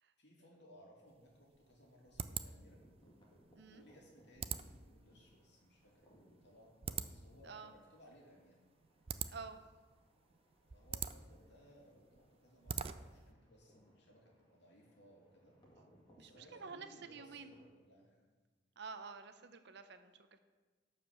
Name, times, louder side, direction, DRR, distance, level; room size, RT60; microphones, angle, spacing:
voice 1, 0.2-2.8 3.7-6.7 7.0-8.6 10.7-15.5 16.2-18.2, equal, 65° left, -2 dB, 2.6 m, -62 dB
sound 1, 1.1-13.3, right 7 dB, 30° right, 0.4 m, -46 dB
sound 2, 2.7-17.7, equal, 25° left, 2.1 m, -69 dB
voice 2, 3.5-3.8 7.4-7.7 9.3-9.6 16.2-17.5 18.8-20.4, right 5 dB, 60° right, 9 dB, 0.8 m, -50 dB
11.5 x 5.1 x 7.1 m, 1.3 s
head